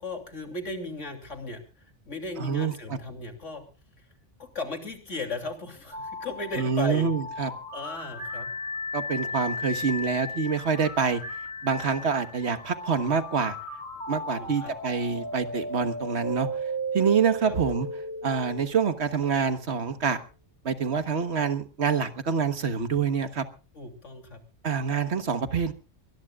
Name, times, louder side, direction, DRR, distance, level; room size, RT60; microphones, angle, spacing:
voice 1, 0.0-3.6 4.0-4.1 4.4-7.1 7.7-8.5 14.3-14.7 17.5-17.6 23.7-24.4, left 2 dB, 85° left, 4 dB, 3.3 m, -36 dB
voice 2, 2.4-3.0 6.6-7.5 8.9-11.2 11.6-13.6 14.1-16.5 16.9-17.9 18.2-20.2 20.6-23.4 24.6-25.7, right 6 dB, 65° right, 9 dB, 1.6 m, -26 dB
sound 1, 5.9-19.8, equal, 15° right, 6.3 m, -36 dB
23.0 x 20.0 x 2.4 m, 0.35 s
omnidirectional pair, 1.2 m